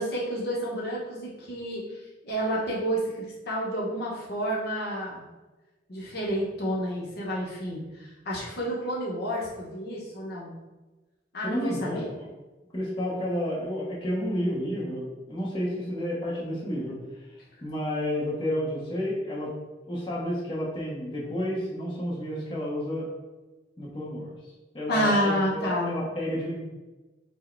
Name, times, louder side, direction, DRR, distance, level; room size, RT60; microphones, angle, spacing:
voice 1, 0.0-1.8 2.2-5.2 5.9-10.5 11.3-12.1 24.9-25.9, equal, 55° left, -4 dB, 0.9 m, -29 dB
voice 2, 11.4-12.3 12.7-17.0 17.6-19.5 19.9-23.1 23.8-24.3 24.7-26.7, equal, 25° left, -5 dB, 0.9 m, -31 dB
4.5 x 2.1 x 4.4 m, 1.1 s
head